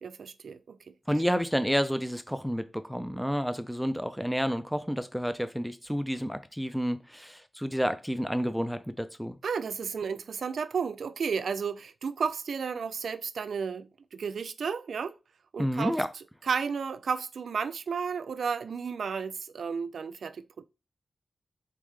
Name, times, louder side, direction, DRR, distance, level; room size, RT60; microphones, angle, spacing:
voice 1, 0.0-0.8 9.4-15.2 15.5-16.0 16.4-20.6, right 6 dB, 75° right, 0.3 m, -33 dB
voice 2, 1.1-9.4 15.6-16.1, equal, ahead, 0.4 m, -30 dB
3.6 x 3.6 x 3.2 m
wide cardioid pair, 145°, 0 cm